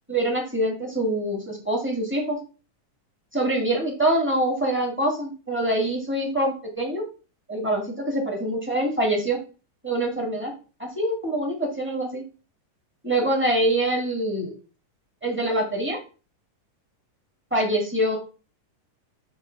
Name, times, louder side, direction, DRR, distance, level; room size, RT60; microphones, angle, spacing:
voice 1, 0.1-2.4 3.3-7.0 7.5-9.4 9.8-10.5 10.8-12.2 13.0-14.5 15.2-16.0 17.5-18.2, right 1 dB, 10° right, -1 dB, 0.8 m, -25 dB
8.1 x 3.1 x 5.6 m, 0.34 s
omnidirectional pair, 3.9 m